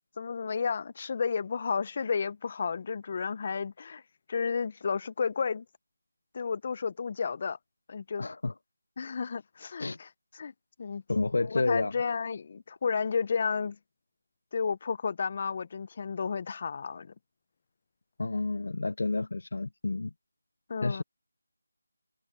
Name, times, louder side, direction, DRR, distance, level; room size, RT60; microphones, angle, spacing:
voice 1, 0.2-4.0 4.3-5.6 6.3-7.6 7.9-8.3 9.0-10.1 10.3-10.5 10.8-11.0 11.5-13.8 14.5-17.1 20.7-21.0, left 5 dB, 35° left, 0.8 m, -32 dB
voice 2, 8.2-8.5 9.8-10.0 11.1-11.9 18.2-20.1 20.8-21.0, left 3 dB, 60° left, 0.5 m, -30 dB
figure-of-eight pair, 170°, 0 cm